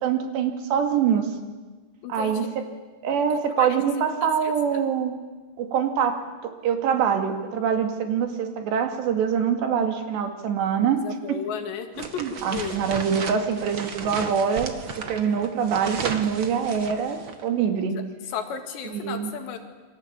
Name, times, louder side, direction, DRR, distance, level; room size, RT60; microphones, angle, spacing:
voice 1, 0.0-1.3 2.1-2.6 3.0-5.1 5.6-11.0 12.0-18.0 18.9-19.3, right 7 dB, 75° right, 6 dB, 4.4 m, -24 dB
voice 2, 2.0-2.6 3.6-3.7 4.4-4.8 10.9-12.1 12.5-12.8 18.0-18.1 18.3-19.6, left 7 dB, 75° left, 6 dB, 4.3 m, -34 dB
sound 1, 11.9-17.4, right 5 dB, 55° right, 1.4 m, -35 dB
28.5 x 24.0 x 8.8 m, 1.3 s
omnidirectional pair, 5.1 m